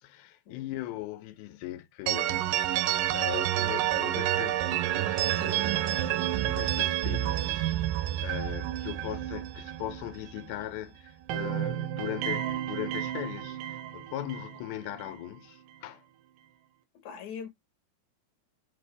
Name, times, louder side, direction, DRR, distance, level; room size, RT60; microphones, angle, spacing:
voice 1, 0.0-16.0, left 14 dB, 90° left, 2.6 m, -40 dB
sound 1, 2.1-10.8 11.1-15.2, right 13 dB, 80° right, 2.0 m, -30 dB
voice 2, 16.9-17.5, left 7 dB, 60° left, 2.4 m, -41 dB
5.7 x 2.6 x 3.3 m
omnidirectional pair, 4.3 m